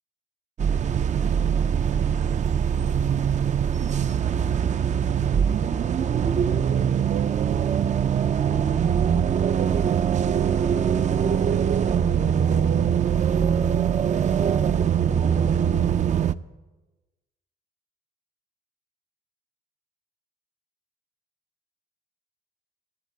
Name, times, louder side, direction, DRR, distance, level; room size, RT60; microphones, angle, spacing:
sound 1, 0.6-16.3, right 8 dB, 35° right, 0.4 m, -22 dB
voice 1, 6.6-16.1, right 3 dB, 90° right, 2 dB, 2.7 m, -50 dB
15.0 x 7.6 x 8.4 m, 1.1 s
cardioid pair, 90°, 20 cm